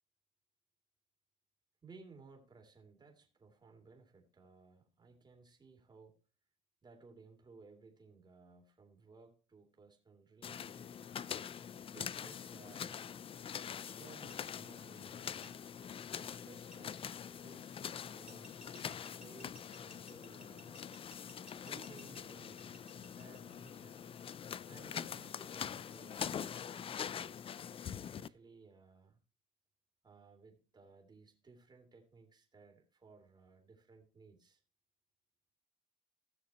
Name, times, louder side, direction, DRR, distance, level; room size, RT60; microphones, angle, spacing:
voice 1, 1.8-6.1 6.8-10.9 11.9-13.0 13.8-15.5 16.1-17.8 18.1-18.5 19.1-20.9 21.6-24.0 24.7-27.3 28.0-29.2 30.0-34.6, right 4 dB, 25° right, 3 dB, 2.6 m, -59 dB
sound 1, 10.4-28.3, left 8 dB, 35° left, 0.4 m, -44 dB
sound 2, 14.3-14.4 15.4-15.5 16.7-16.8 18.3-24.3 25.5-26.8, equal, 5° right, 2.4 m, -59 dB
15.5 x 6.5 x 2.9 m, 0.36 s
cardioid pair, 110°, 17 cm